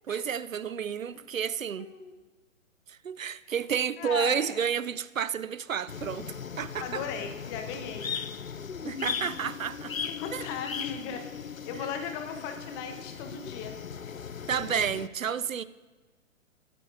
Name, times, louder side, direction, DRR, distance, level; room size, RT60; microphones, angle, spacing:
voice 1, 0.1-1.9 2.9-7.0 8.8-10.5 14.5-15.6, right 7 dB, 80° right, 0.5 m, -31 dB
voice 2, 1.8-2.1 4.0-4.6 6.8-8.1 10.1-11.2 11.7-13.8, left 6 dB, 20° left, 0.9 m, -37 dB
sound 1, 5.9-15.1, left 7 dB, 90° left, 0.5 m, -38 dB
21.0 x 9.0 x 2.6 m
figure-of-eight pair, 120°, 39 cm